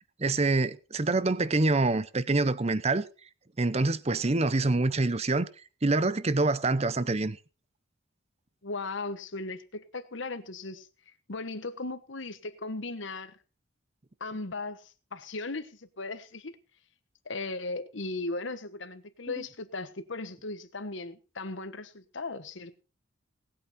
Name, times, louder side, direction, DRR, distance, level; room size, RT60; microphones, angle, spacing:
voice 1, 0.2-3.1 3.6-5.5 5.8-7.4, right 2 dB, 30° right, 0.7 m, -26 dB
voice 2, 8.6-10.9 11.3-13.4 14.2-16.5 17.2-22.8, left 3 dB, 65° left, 1.2 m, -37 dB
18.5 x 8.8 x 4.3 m
head